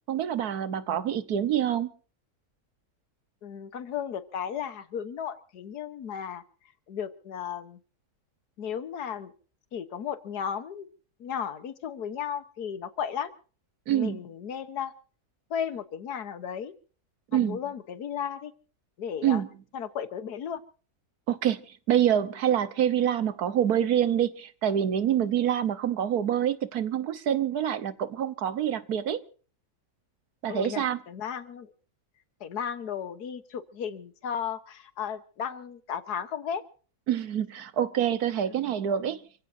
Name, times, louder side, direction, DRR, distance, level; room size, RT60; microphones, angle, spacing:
voice 1, 0.1-1.9 13.9-14.2 17.3-17.6 19.2-19.5 21.3-21.6 21.9-29.2 30.4-31.0 37.1-39.2, right 10 dB, 75° right, 1.6 m, -26 dB
voice 2, 3.4-6.4 6.9-7.8 8.6-9.3 9.7-10.9 11.2-13.3 13.9-14.9 15.5-16.7 17.3-18.5 19.0-19.4 19.7-20.6 30.5-31.7 32.4-36.6, left 8 dB, 85° left, 1.7 m, -34 dB
28.5 x 16.0 x 2.7 m
omnidirectional pair, 1.6 m